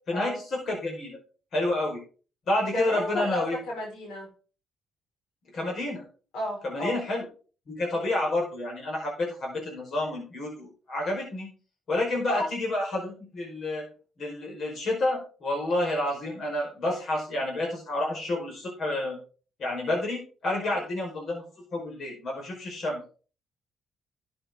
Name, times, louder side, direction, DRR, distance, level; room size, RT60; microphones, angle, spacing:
voice 1, 0.1-1.2 1.5-2.0 2.5-3.6 5.5-6.0 6.6-7.3 7.7-11.5 11.9-13.9 14.2-19.2 19.6-21.4 21.7-23.2, left 1 dB, 60° left, -1 dB, 5.2 m, -29 dB
voice 2, 2.7-4.3 6.3-7.0 12.3-12.5 20.5-20.8, left 1 dB, 85° left, -1 dB, 5.7 m, -32 dB
12.5 x 7.9 x 4.0 m, 0.38 s
cardioid pair, 90°, 0 cm